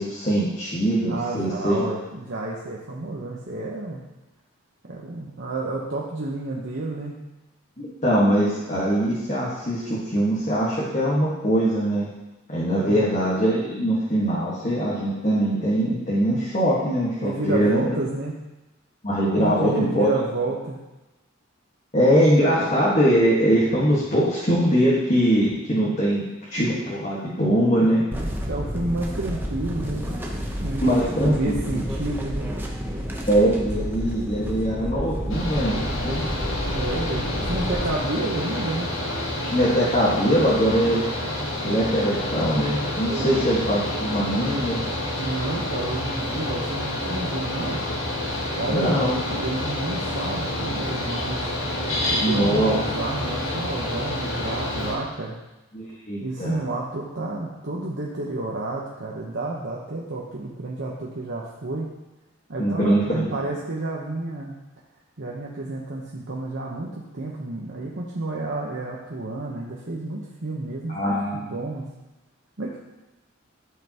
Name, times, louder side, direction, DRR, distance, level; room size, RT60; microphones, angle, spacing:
voice 1, 0.0-1.8 7.8-12.1 12.5-18.0 19.0-20.1 21.9-26.2 26.5-28.0 30.8-31.5 33.3-36.3 39.5-41.0 41.6-44.8 48.7-49.2 52.2-52.8 55.7-56.6 62.6-63.4 70.9-71.5, equal, 35° left, -7 dB, 1.6 m, -22 dB
voice 2, 1.1-4.0 4.9-7.2 12.7-13.1 17.2-18.4 19.4-20.8 27.8-30.2 30.6-32.5 36.7-38.9 43.0-43.4 45.2-47.8 48.6-51.4 52.1-55.4 56.2-61.9 62.5-64.6 65.2-71.1 71.5-71.9 72.6-72.8, right 2 dB, 60° right, -4 dB, 1.0 m, -30 dB
sound 1, 28.1-37.9, equal, 10° right, 0.8 m, -30 dB
Mechanical fan, 35.3-54.9, left 1 dB, 70° left, 1.8 m, -28 dB
12.5 x 5.5 x 3.0 m, 1.0 s
head